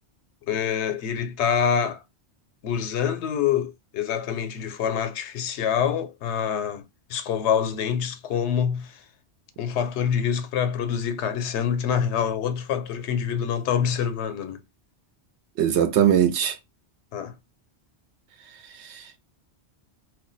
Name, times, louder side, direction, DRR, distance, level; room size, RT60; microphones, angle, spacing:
voice 1, 0.5-2.0 2.6-9.0 9.6-14.6 17.1-17.4, left 8 dB, 90° left, 0.9 m, -26 dB
voice 2, 15.6-16.6 18.7-19.2, right 9 dB, 85° right, 0.9 m, -21 dB
2.2 x 2.2 x 3.8 m
omnidirectional pair, 1.1 m